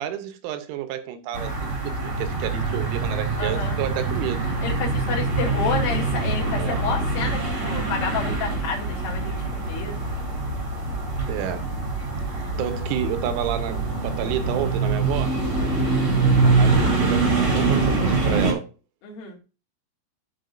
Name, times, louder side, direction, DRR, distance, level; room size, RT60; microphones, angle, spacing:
voice 1, 0.0-4.5 6.6-6.8 11.3-11.7 12.5-15.4 16.6-18.7, right 10 dB, 80° right, 3.2 m, -30 dB
sound 1, 1.3-18.5, right 3 dB, 35° right, 1.7 m, -24 dB
voice 2, 3.4-3.8 4.6-10.1 15.6-15.9 19.0-19.4, left 5 dB, 55° left, 3.5 m, -30 dB
14.0 x 4.8 x 2.5 m
omnidirectional pair, 5.7 m